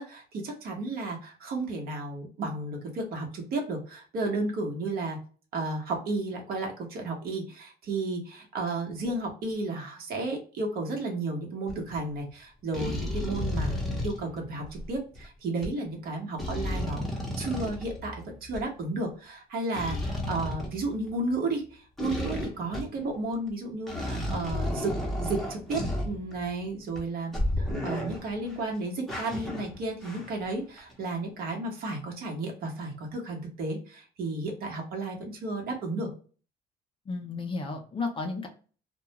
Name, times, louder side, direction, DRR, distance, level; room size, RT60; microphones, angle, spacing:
voice 1, 0.0-5.2 5.5-18.1 18.4-24.9 25.2-36.1, right 2 dB, 65° right, 1 dB, 1.0 m, -33 dB
sound 1, 11.7-12.0 12.7-15.3 15.6-15.7 16.4-18.6 19.7-21.3 22.0-23.1 23.5-23.6 23.9-26.6 26.9-27.0 27.3-28.6 29.1-30.5 30.8-30.9, left 1 dB, ahead, 0.8 m, -33 dB
voice 2, 37.1-38.5, left 3 dB, 30° left, 3 dB, 0.5 m, -33 dB
2.3 x 2.2 x 2.8 m, 0.38 s
cardioid pair, 110°, 17 cm